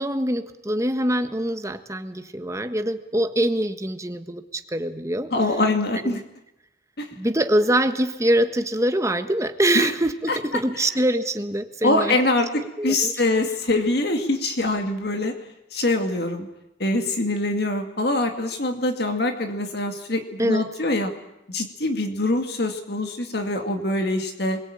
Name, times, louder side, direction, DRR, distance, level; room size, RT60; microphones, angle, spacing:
voice 1, 0.0-5.3 6.0-6.2 7.1-12.1 12.8-13.1 20.4-20.7, right 1 dB, 15° right, 8 dB, 1.4 m, -24 dB
voice 2, 5.3-6.2 7.0-7.1 9.7-9.9 10.3-10.4 10.7-10.8 11.8-15.3 15.7-16.5 16.8-21.1 21.5-24.6, left 2 dB, 55° left, 5 dB, 2.2 m, -24 dB
27.5 x 22.0 x 8.8 m, 0.91 s
head